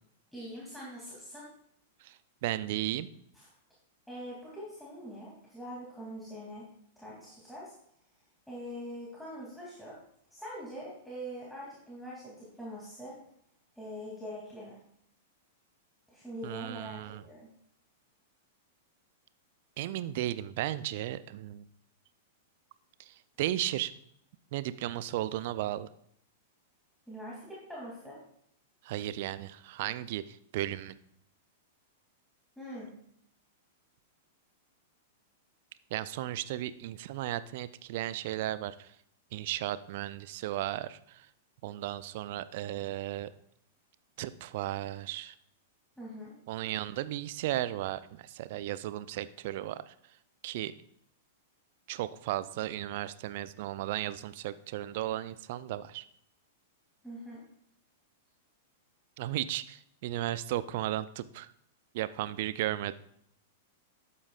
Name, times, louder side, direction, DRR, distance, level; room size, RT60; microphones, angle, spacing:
voice 1, 0.3-1.5 3.3-3.5 4.1-6.7 7.0-7.7 8.5-10.0 10.3-13.2 13.8-14.8 16.1-17.5 27.1-28.2 32.6-32.9 46.0-46.4 57.0-57.4, equal, ahead, -7 dB, 2.7 m, -43 dB
voice 2, 2.4-3.1 16.4-17.2 19.8-21.7 23.1-23.9 24.5-25.9 28.8-31.0 35.9-38.9 39.3-41.3 41.6-43.3 44.2-45.3 46.5-49.9 50.4-50.7 51.9-56.0 59.2-61.5 61.9-62.9, right 14 dB, 50° right, 15 dB, 0.4 m, -35 dB
12.0 x 8.4 x 2.4 m, 0.70 s
figure-of-eight pair, 100°, 0 cm